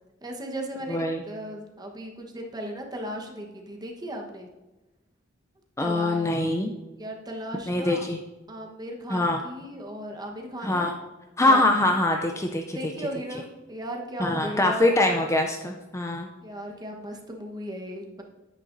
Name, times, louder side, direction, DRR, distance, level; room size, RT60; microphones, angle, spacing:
voice 1, 0.2-4.5 5.8-6.5 7.0-8.1 8.5-10.9 11.4-11.6 12.7-15.0 16.4-18.2, right 1 dB, 20° right, 1 dB, 1.1 m, -36 dB
voice 2, 0.9-1.2 5.8-6.7 7.7-8.2 9.1-9.4 10.6-10.9 11.4-12.8 14.2-16.3, left 2 dB, 15° left, 3 dB, 0.4 m, -23 dB
9.7 x 9.1 x 2.6 m, 1.1 s
head